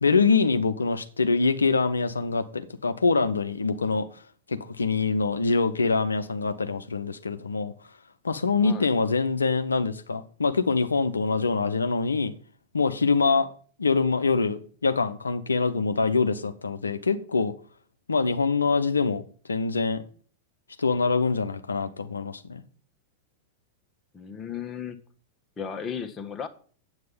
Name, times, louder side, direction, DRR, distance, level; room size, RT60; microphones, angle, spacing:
voice 1, 0.0-4.2 4.5-7.7 8.2-12.3 12.7-13.5 13.8-17.5 18.1-19.2 19.5-20.0 20.8-22.6, left 4 dB, 75° left, 0.7 m, -24 dB
voice 2, 24.1-25.0 25.6-26.5, left 7 dB, 20° left, 1.3 m, -35 dB
9.5 x 8.0 x 5.3 m
figure-of-eight pair, 90°, 0 cm